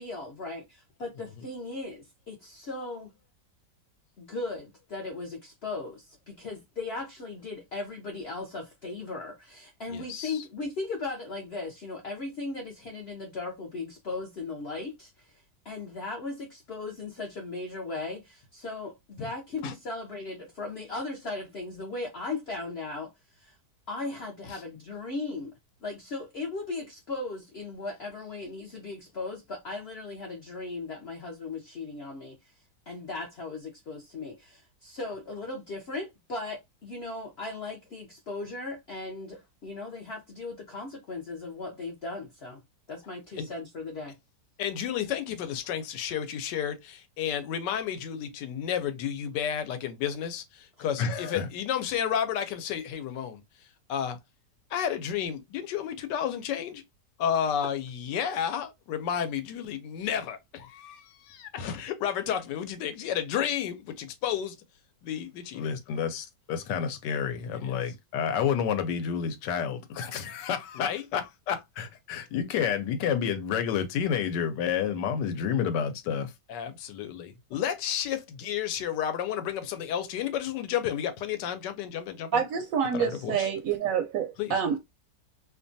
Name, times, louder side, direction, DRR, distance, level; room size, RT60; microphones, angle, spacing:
voice 1, 0.0-3.1 4.2-23.6 23.9-25.5 25.8-32.4 32.9-42.6 42.9-44.1, left 3 dB, 60° left, 0.6 m, -37 dB
voice 2, 9.9-10.4 19.2-19.3 19.6-19.7 24.5-24.6 35.1-35.2 43.4-43.5 44.6-53.4 53.9-54.2 54.7-56.8 57.2-64.6 65.0-82.4 82.9-83.5 84.4-84.8, left 8 dB, 85° left, 1.2 m, -31 dB
voice 3, 82.3-84.8, right 7 dB, 70° right, 0.8 m, -27 dB
2.8 x 2.2 x 2.5 m
omnidirectional pair, 1.8 m